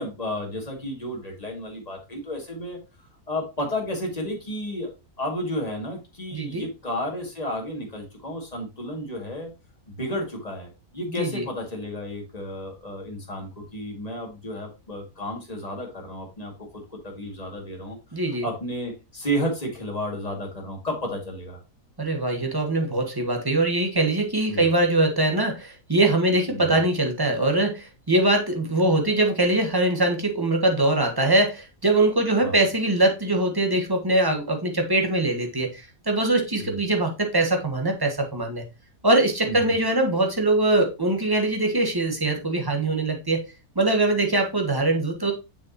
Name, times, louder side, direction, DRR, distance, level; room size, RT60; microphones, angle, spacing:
voice 1, 0.0-2.8 3.3-4.9 5.2-9.5 10.0-18.0 18.4-21.6 24.5-24.7 26.5-26.8 32.4-32.5 36.6-36.8 39.4-39.6, equal, 30° left, 1 dB, 2.4 m, -32 dB
voice 2, 6.3-6.7 11.1-11.4 18.1-18.5 22.0-38.6 39.0-43.5 43.7-45.3, right 2 dB, 15° right, 4 dB, 1.5 m, -22 dB
6.9 x 6.5 x 2.9 m, 0.27 s
omnidirectional pair, 1.4 m